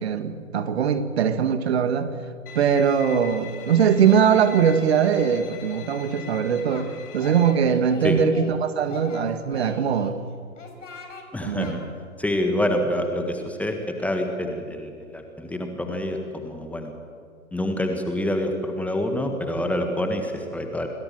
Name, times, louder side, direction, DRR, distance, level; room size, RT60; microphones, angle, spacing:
voice 1, 0.0-2.1 2.6-6.9 7.1-10.2 11.4-11.8, right 7 dB, 45° right, 10 dB, 1.9 m, -21 dB
Bowed string instrument, 2.5-7.5, left 6 dB, 40° left, 3.5 m, -41 dB
Singing, 6.2-6.9 7.2-8.5 8.8-10.1 10.6-11.2 11.6-11.7, left 4 dB, 60° left, 5.0 m, -41 dB
voice 2, 11.3-11.8 12.2-16.9 17.5-20.9, left 1 dB, 5° left, 4 dB, 1.6 m, -27 dB
28.5 x 21.0 x 7.5 m, 2.2 s
figure-of-eight pair, 120°, 42 cm